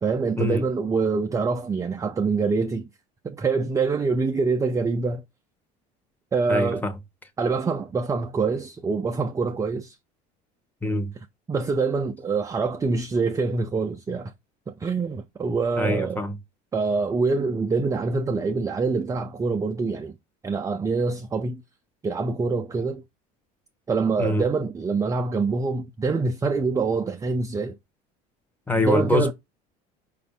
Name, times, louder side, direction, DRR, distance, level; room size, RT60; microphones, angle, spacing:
voice 1, 0.0-2.9 3.2-5.2 6.3-6.9 7.4-10.0 11.5-14.3 14.7-16.2 16.7-20.2 20.4-21.6 22.0-23.0 23.9-27.7 28.8-29.3, right 4 dB, 15° right, 0.4 m, -25 dB
voice 2, 6.5-6.9 10.8-11.1 15.8-16.4 24.2-24.4 28.7-29.3, left 2 dB, 10° left, 0.9 m, -24 dB
4.9 x 2.6 x 3.4 m
supercardioid pair, 105°, 20 cm